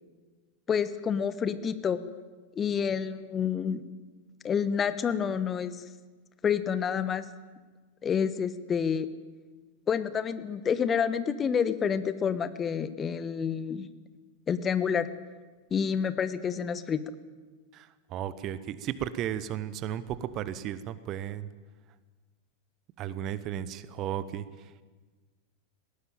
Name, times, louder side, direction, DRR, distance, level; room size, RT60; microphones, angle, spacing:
voice 1, 0.7-2.0 2.6-3.8 4.4-5.8 6.4-7.3 8.0-9.1 9.9-13.9 14.5-15.1 15.7-17.0, left 7 dB, 20° left, 13 dB, 1.2 m, -28 dB
voice 2, 18.1-21.5 23.0-24.4, right 11 dB, 35° right, 16 dB, 1.1 m, -34 dB
20.0 x 17.0 x 9.1 m, 1.4 s
figure-of-eight pair, 90°, 0 cm